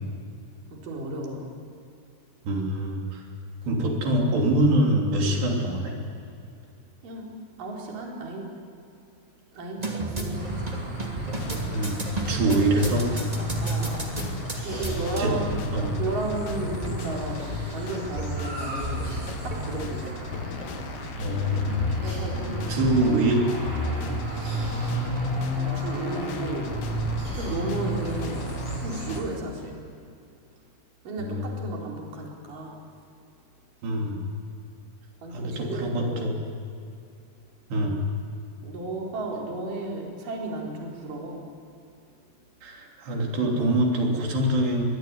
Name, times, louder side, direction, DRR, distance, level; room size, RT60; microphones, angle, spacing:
voice 1, 0.7-1.5 7.0-7.3 7.6-8.5 9.5-10.8 13.6-14.0 14.6-15.4 16.0-19.1 19.4-20.2 22.0-22.7 25.6-27.0 27.3-28.5 28.8-29.8 31.0-32.8 35.2-36.1 38.6-41.4, right 2 dB, 50° right, -1 dB, 5.6 m, -34 dB
voice 2, 2.5-3.3 3.7-5.9 11.7-12.0 12.3-13.1 15.2-15.3 15.7-16.0 21.2-22.0 22.7-23.5 31.2-31.5 33.8-34.3 35.3-36.4 37.7-38.0 42.6-44.9, right 1 dB, 75° right, 0 dB, 5.4 m, -24 dB
sound 1, 9.8-20.7, right 1 dB, 15° right, 1.7 m, -33 dB
sound 2, 10.3-29.2, equal, 35° right, 7.4 m, -32 dB
sound 3, 11.4-29.2, left 10 dB, 80° left, 2.0 m, -39 dB
23.0 x 22.0 x 9.6 m, 2.6 s
omnidirectional pair, 4.9 m